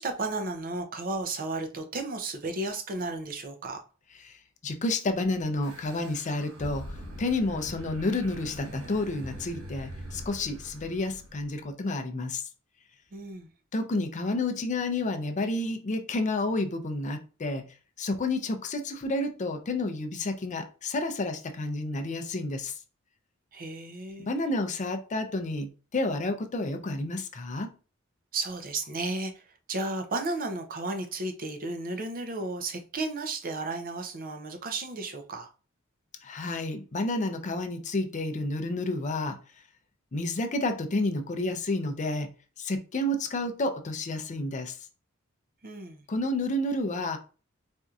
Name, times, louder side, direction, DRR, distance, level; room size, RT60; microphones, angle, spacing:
voice 1, 0.0-3.8 13.1-13.5 23.5-24.3 28.3-29.4 29.7-35.5 45.6-46.0, right 2 dB, 45° right, 0.5 m, -33 dB
voice 2, 4.2-12.5 13.7-17.6 18.0-22.8 24.2-27.7 36.2-39.4 40.1-42.3 42.6-44.8 46.1-47.2, left 2 dB, 35° left, 0.5 m, -30 dB
sound 1, 5.6-11.6, equal, 85° right, 1.1 m, -43 dB
4.3 x 2.6 x 2.4 m
head